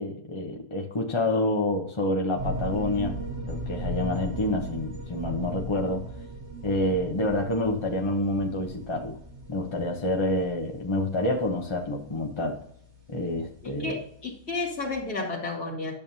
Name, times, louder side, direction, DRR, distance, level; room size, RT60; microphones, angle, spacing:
voice 1, 0.0-3.2 3.5-6.1 6.6-9.2 9.5-12.6 13.1-14.0, left 1 dB, 25° left, 1 dB, 0.6 m, -28 dB
sound 1, 2.4-14.9, equal, 80° right, 3.2 m, -38 dB
voice 2, 13.6-16.0, left 3 dB, 70° left, -2 dB, 2.5 m, -32 dB
10.5 x 7.1 x 2.7 m, 0.65 s
omnidirectional pair, 1.7 m